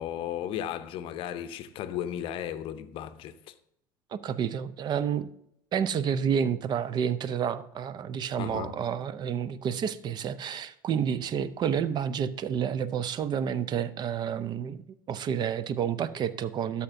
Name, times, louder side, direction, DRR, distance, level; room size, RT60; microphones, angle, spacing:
voice 1, 0.0-3.5 8.4-8.8, left 10 dB, 50° left, 0.7 m, -35 dB
voice 2, 4.1-5.3 5.7-16.8, right 8 dB, 35° right, 0.6 m, -30 dB
12.5 x 7.1 x 2.6 m
hypercardioid pair, 75°, 12 cm